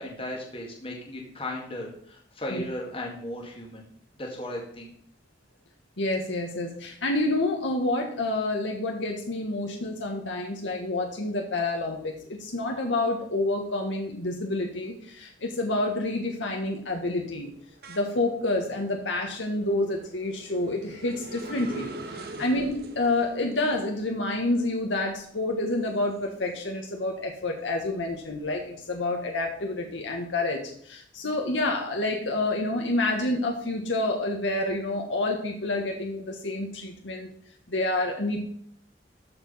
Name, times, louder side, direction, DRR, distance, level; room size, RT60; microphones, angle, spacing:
voice 1, 0.0-3.9 4.2-4.9 22.3-22.6, left 1 dB, 30° left, -1 dB, 2.0 m, -36 dB
voice 2, 6.0-17.5 17.9-37.3 37.7-38.4, left 2 dB, 85° left, 2 dB, 1.3 m, -28 dB
sound 1, 14.9-15.3 15.7-27.0 27.4-29.1, right 2 dB, 55° right, 1.3 m, -45 dB
13.5 x 4.8 x 5.5 m, 0.63 s
head